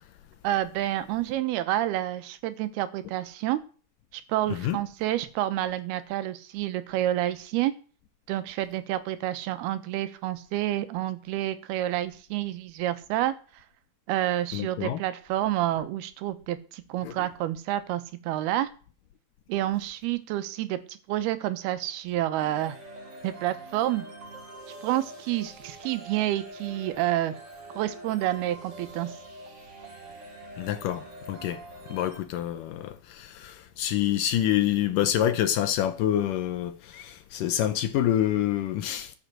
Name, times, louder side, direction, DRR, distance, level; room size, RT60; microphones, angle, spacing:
voice 1, 0.4-3.6 4.1-7.7 8.3-13.3 14.1-18.7 19.5-22.8 23.2-24.1 24.8-27.3 27.7-29.1, right 14 dB, 85° right, 2.9 m, -29 dB
voice 2, 14.5-15.0 17.0-17.1 30.6-31.6 31.9-39.2, left 11 dB, 75° left, 2.1 m, -27 dB
sound 1, 22.4-32.2, right 1 dB, 35° right, 2.5 m, -44 dB
13.0 x 6.4 x 7.7 m
omnidirectional pair, 4.4 m